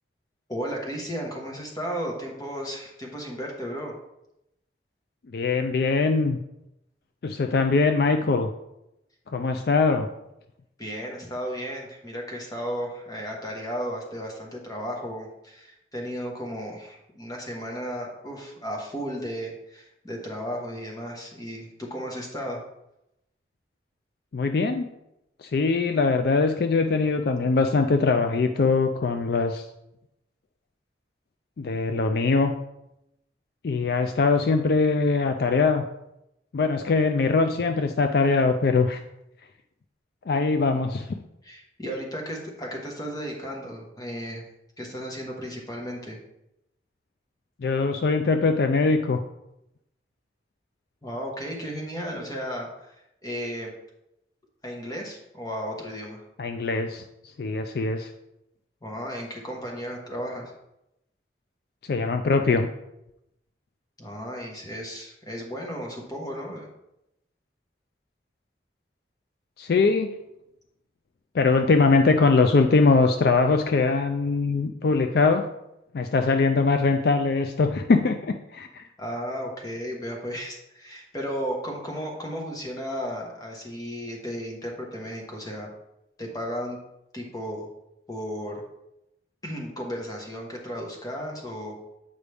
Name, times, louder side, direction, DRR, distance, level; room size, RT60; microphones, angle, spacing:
voice 1, 0.5-3.9 10.8-22.6 41.4-44.4 44.8-46.2 51.0-52.9 53.2-53.7 54.6-56.2 58.8-60.5 64.0-66.7 79.0-85.7 86.2-86.8 87.1-87.7 88.1-88.6 89.4-91.8, equal, 20° left, 0 dB, 1.3 m, -34 dB
voice 2, 5.3-6.4 7.2-8.5 9.3-10.1 24.3-24.9 25.4-29.6 31.6-32.5 33.6-35.8 36.5-39.0 40.3-41.1 47.6-49.2 56.4-57.0 57.4-58.1 61.9-62.7 69.6-70.1 71.3-75.5 75.9-78.8, left 4 dB, 60° left, 6 dB, 0.4 m, -22 dB
8.2 x 5.0 x 3.4 m, 0.86 s
head